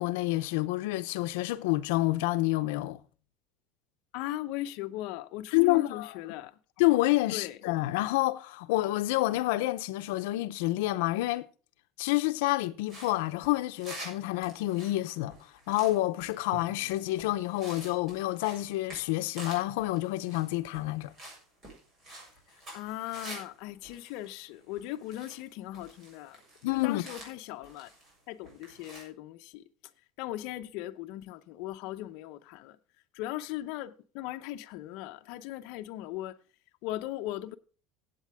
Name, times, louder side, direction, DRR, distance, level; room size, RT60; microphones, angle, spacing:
voice 1, 0.0-3.0 5.5-6.1 6.8-11.5 12.0-15.3 15.7-21.1 26.6-27.0, left 18 dB, 85° left, 0.7 m, -28 dB
voice 2, 4.1-6.6 7.3-7.6 22.7-26.4 26.7-27.9 28.3-29.6 30.2-32.8 33.1-36.4 36.8-37.5, left 14 dB, 60° left, 0.8 m, -38 dB
sound 1, 12.9-23.5 23.8-25.5 25.7-28.2 28.4-29.0, right 1 dB, 25° right, 6.7 m, -49 dB
Drum, 16.5-18.4, right 7 dB, 85° right, 1.7 m, -50 dB
16.0 x 8.5 x 3.6 m
cardioid pair, 170°, 0 cm